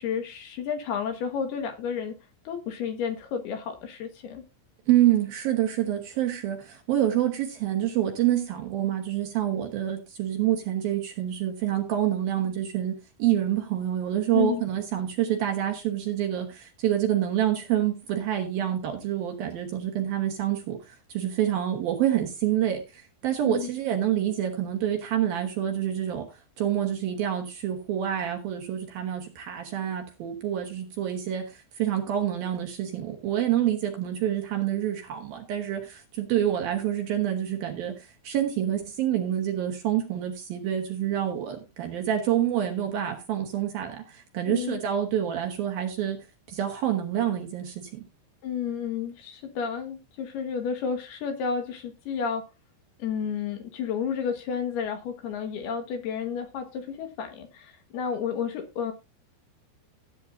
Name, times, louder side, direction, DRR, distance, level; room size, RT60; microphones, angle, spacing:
voice 1, 0.0-2.2 2.4-4.4 14.3-14.6 23.4-23.7 44.5-44.8 48.4-52.5 53.0-58.9, left 7 dB, 65° left, 3.1 m, -31 dB
voice 2, 4.9-26.3 26.6-48.0, right 11 dB, 65° right, 2.6 m, -27 dB
16.0 x 9.2 x 2.6 m
omnidirectional pair, 5.4 m